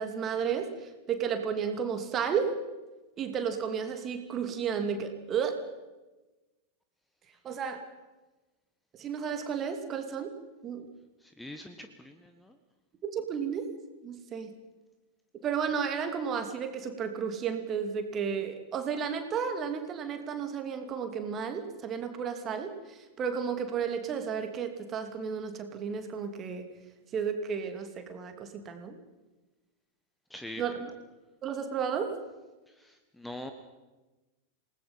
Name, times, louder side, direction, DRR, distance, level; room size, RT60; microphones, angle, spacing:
voice 1, 0.0-2.5 3.2-5.6 7.4-7.8 8.9-10.3 10.6-10.9 13.0-13.7 14.0-14.5 15.3-26.7 27.1-28.9 30.6-30.9 31.4-32.1, right 7 dB, 30° right, 6 dB, 2.8 m, -33 dB
voice 2, 11.2-12.5 30.3-30.6 32.7-33.5, left 1 dB, 5° left, 7 dB, 1.3 m, -43 dB
27.5 x 19.5 x 5.7 m, 1.1 s
figure-of-eight pair, 90°, 0 cm